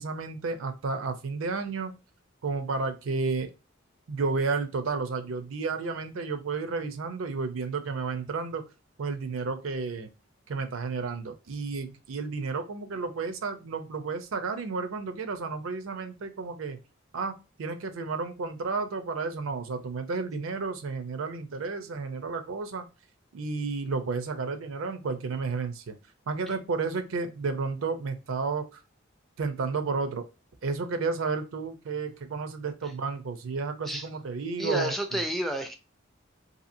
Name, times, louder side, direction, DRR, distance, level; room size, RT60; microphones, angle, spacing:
voice 1, 0.0-1.9 2.4-3.5 4.1-8.6 9.0-10.1 10.5-16.8 17.1-22.9 23.3-26.0 26.3-28.8 29.4-30.3 30.6-35.2, right 4 dB, 75° right, 8 dB, 0.5 m, -32 dB
voice 2, 34.6-35.7, right 1 dB, ahead, 3 dB, 0.4 m, -30 dB
2.8 x 2.7 x 2.5 m, 0.29 s
head